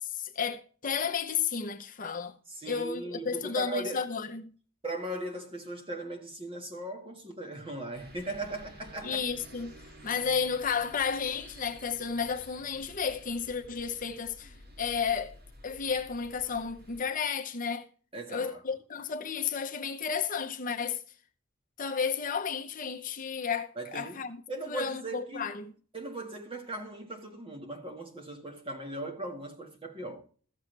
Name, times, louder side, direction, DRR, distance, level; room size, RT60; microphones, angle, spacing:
voice 1, 0.0-2.3 2.7-4.5 9.0-9.8 10.0-15.4 15.6-17.9 18.3-21.0 21.8-24.4 24.7-25.7, left 6 dB, 40° left, 0.8 m, -32 dB
voice 2, 2.5-4.0 4.8-9.2 18.1-18.6 23.7-24.2 24.5-25.5 25.9-30.2, right 2 dB, 25° right, 1.6 m, -38 dB
sound 1, 7.9-17.0, equal, 50° right, 2.0 m, -52 dB
14.5 x 7.2 x 3.3 m
head